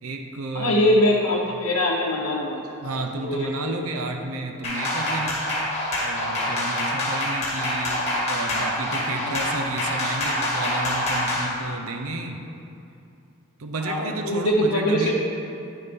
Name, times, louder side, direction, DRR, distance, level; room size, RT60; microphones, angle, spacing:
voice 1, 0.0-0.8 2.8-5.5 6.0-12.4 13.6-15.1, right 2 dB, 80° right, 5 dB, 0.6 m, -32 dB
voice 2, 0.5-3.7 13.8-15.1, left 1 dB, 85° left, -4 dB, 0.8 m, -23 dB
sound 1, 4.6-11.5, left 1 dB, 30° left, 1.9 m, -26 dB
9.7 x 6.7 x 3.6 m, 2.6 s
head